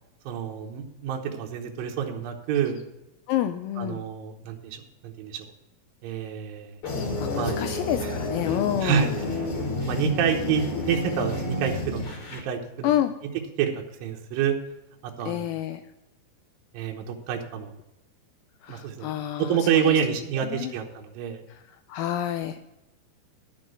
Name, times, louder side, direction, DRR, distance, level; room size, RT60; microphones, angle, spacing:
voice 1, 0.3-2.8 3.8-5.5 6.0-6.8 7.3-7.6 8.0-8.1 8.5-9.2 9.9-12.9 13.6-14.6 15.0-15.6 16.7-17.7 18.7-21.4, right 8 dB, 75° right, 1 dB, 2.6 m, -28 dB
voice 2, 3.3-4.0 7.2-9.1 12.8-13.1 15.3-15.8 18.6-20.0 20.5-20.7 21.9-22.6, left 12 dB, 80° left, 8 dB, 2.3 m, -28 dB
sound 1, 6.8-12.4, left 2 dB, 40° left, 2.6 m, -30 dB
11.5 x 6.0 x 7.8 m, 0.94 s
omnidirectional pair, 4.4 m